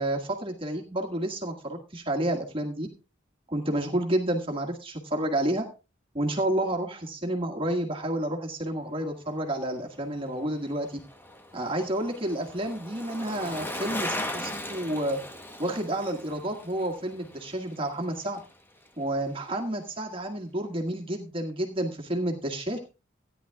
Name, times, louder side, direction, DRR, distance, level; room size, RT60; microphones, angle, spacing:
voice 1, 0.0-2.9 3.5-5.6 6.1-11.0 11.5-15.2 15.6-18.4 19.0-22.8, right 1 dB, 30° right, 0 dB, 1.7 m, -30 dB
Bicycle, 10.1-18.6 18.9-19.0, left 1 dB, 10° left, 1.0 m, -38 dB
16.5 x 10.0 x 2.3 m, 0.29 s
head